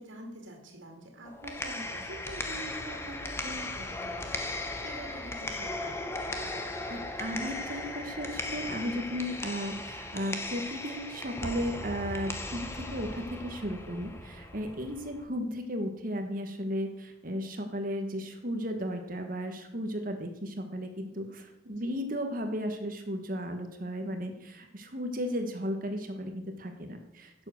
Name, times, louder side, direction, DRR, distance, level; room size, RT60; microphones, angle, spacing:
voice 1, 0.0-6.1 21.6-21.9, right 1 dB, 75° right, 2 dB, 2.5 m, -45 dB
sound 1, 1.2-15.2, left 2 dB, 15° left, 1.0 m, -37 dB
voice 2, 6.9-27.3, equal, 45° right, 5 dB, 1.3 m, -35 dB
11.5 x 7.6 x 6.4 m, 0.88 s
head